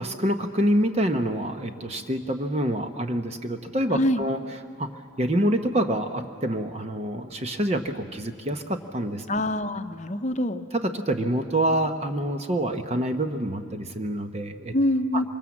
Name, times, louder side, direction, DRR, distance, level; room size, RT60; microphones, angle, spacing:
voice 1, 0.0-4.4 4.8-4.9 5.2-9.3 10.7-14.7 15.1-15.2, right 1 dB, 30° right, 6 dB, 0.9 m, -26 dB
voice 2, 3.9-4.2 9.3-10.7 14.7-15.2, left 1 dB, 35° left, 10 dB, 0.8 m, -25 dB
25.5 x 23.5 x 7.3 m, 2.2 s
head